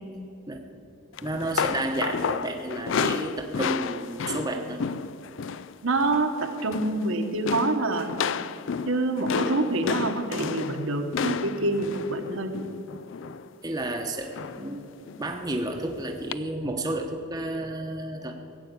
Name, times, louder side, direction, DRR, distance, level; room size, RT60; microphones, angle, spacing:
sound 1, 1.2-5.7 6.0-6.3 6.6-7.1 7.5-13.5 14.3-14.7 15.1-15.2 16.3-16.4, left 6 dB, 55° left, 0.4 m, -31 dB
voice 1, 1.2-4.8 13.6-14.9 15.2-18.3, right 1 dB, 15° right, 2 dB, 1.0 m, -31 dB
voice 2, 5.8-8.1 8.9-12.5, right 2 dB, 70° right, 4 dB, 1.2 m, -26 dB
16.5 x 8.4 x 8.3 m, 2.8 s
head